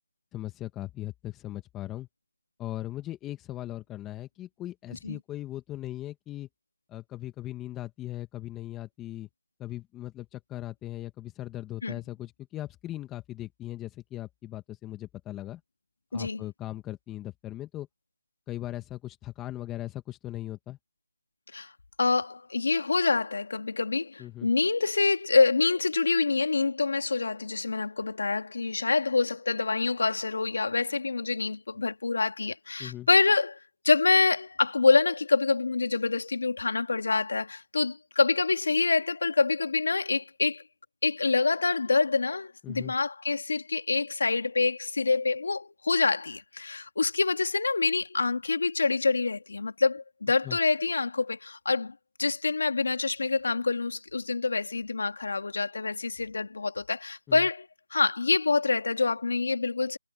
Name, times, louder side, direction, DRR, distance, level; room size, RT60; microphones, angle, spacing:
voice 1, 0.3-2.1 2.6-6.5 6.9-9.3 9.6-15.6 16.1-17.9 18.5-20.8 24.2-24.5 32.8-33.1 42.6-42.9 50.4-50.6 57.3-57.4, left 14 dB, 10° left, 1.7 m, -39 dB
voice 2, 16.1-16.4 21.5-21.7 22.0-33.6 33.8-40.6 41.0-51.9 52.2-60.0, left 4 dB, 65° left, 2.3 m, -26 dB
figure-of-eight pair, 165°, 0 cm